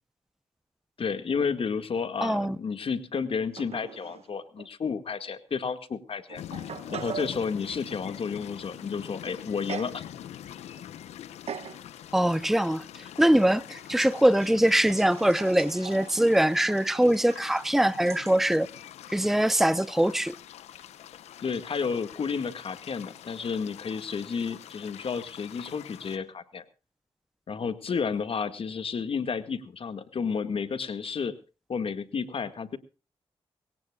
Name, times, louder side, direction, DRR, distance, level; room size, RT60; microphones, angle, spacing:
voice 1, 1.0-6.6 6.9-10.0 21.4-26.6 27.5-31.3 31.7-32.8, left 5 dB, 60° left, 1.9 m, -31 dB
voice 2, 2.2-2.6 12.1-12.8 13.2-18.7 19.1-20.4, right 1 dB, 5° right, 0.7 m, -23 dB
sound 1, 3.5-4.3 4.6-4.7 5.6-5.7 6.3-7.4 9.7-10.0 10.4-10.8 11.5-11.8 12.4-12.5 13.9-18.4, right 7 dB, 70° right, 1.6 m, -41 dB
sound 2, 6.3-26.2, left 11 dB, 90° left, 0.9 m, -45 dB
23.0 x 17.5 x 2.4 m
cardioid pair, 55°, 11 cm